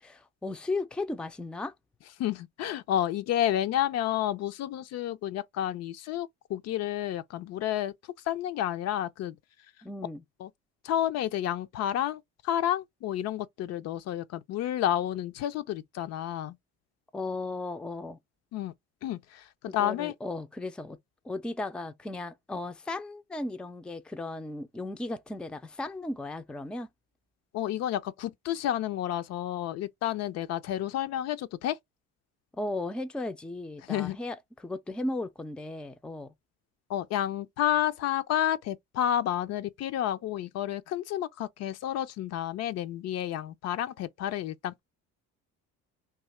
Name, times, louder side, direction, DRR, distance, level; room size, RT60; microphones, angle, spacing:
voice 1, 0.0-1.7 9.8-10.2 17.1-18.2 19.7-21.0 21.2-26.9 32.5-36.3, left 2 dB, 5° left, 0.4 m, -36 dB
voice 2, 2.2-7.9 8.3-9.4 10.4-10.5 10.8-16.6 18.5-18.7 19.0-20.1 27.5-31.8 33.9-34.2 36.9-44.8, left 11 dB, 60° left, 0.5 m, -30 dB
2.7 x 2.4 x 4.2 m
cardioid pair, 95°, 30 cm